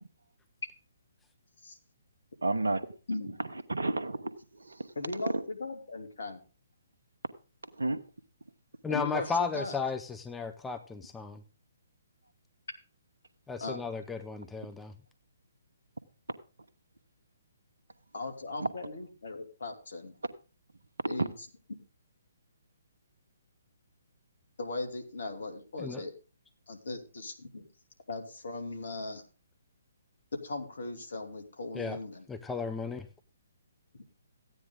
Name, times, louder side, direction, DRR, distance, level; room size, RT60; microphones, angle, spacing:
voice 1, 2.4-2.8 3.4-4.9 5.2-5.3 7.8-8.0 18.6-18.7 21.2-21.3, right 2 dB, 75° right, 11 dB, 1.2 m, -31 dB
voice 2, 5.0-6.4 8.9-9.8 13.6-13.9 18.1-20.1 21.1-21.3 24.6-26.1 26.7-27.6 28.1-29.2 30.4-32.3, left 2 dB, 65° left, 5 dB, 2.7 m, -38 dB
voice 3, 8.8-11.4 13.5-14.9 25.8-26.0 31.7-32.0 32.3-33.1, left 5 dB, 5° left, 7 dB, 0.7 m, -34 dB
14.5 x 9.5 x 3.8 m, 0.35 s
figure-of-eight pair, 130°, 0 cm